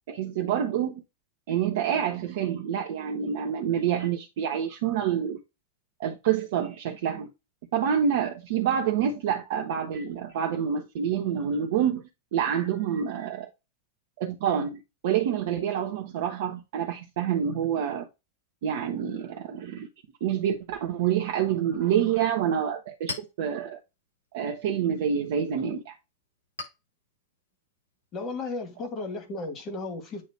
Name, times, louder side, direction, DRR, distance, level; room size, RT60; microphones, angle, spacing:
voice 1, 0.1-1.0 1.5-5.4 6.0-7.3 7.7-12.0 12.3-13.5 14.2-18.1 18.6-19.9 20.2-23.8 24.3-25.9, right 8 dB, 55° right, 1.0 m, -27 dB
Chink clink, 22.5-29.6, left 3 dB, 80° left, 4.0 m, -46 dB
voice 2, 28.1-30.2, left 3 dB, 30° left, 2.1 m, -34 dB
8.6 x 3.0 x 4.2 m
figure-of-eight pair, 90°, 0 cm